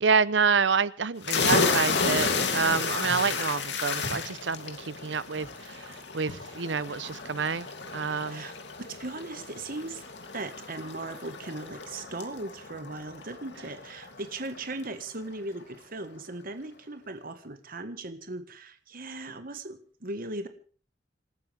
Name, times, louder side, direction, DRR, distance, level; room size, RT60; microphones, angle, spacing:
voice 1, 0.0-7.7 7.9-8.4, right 5 dB, 85° right, 18 dB, 0.8 m, -28 dB
sound 1, 1.2-14.6, left 4 dB, 70° left, 2.8 m, -32 dB
voice 2, 8.8-10.0 10.3-20.5, right 2 dB, 55° right, 9 dB, 1.6 m, -38 dB
28.0 x 13.0 x 3.5 m, 0.42 s
head